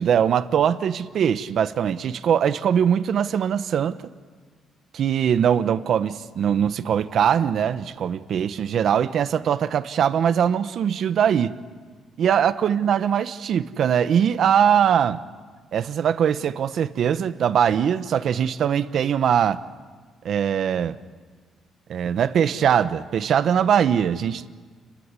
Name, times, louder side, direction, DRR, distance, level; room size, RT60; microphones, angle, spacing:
voice 1, 0.0-4.0 4.9-11.5 12.2-15.2 15.7-19.6 20.2-21.0 21.9-24.5, right 8 dB, 60° right, 13 dB, 0.9 m, -21 dB
30.0 x 14.0 x 9.7 m, 1.5 s
cardioid pair, 115°, 0 cm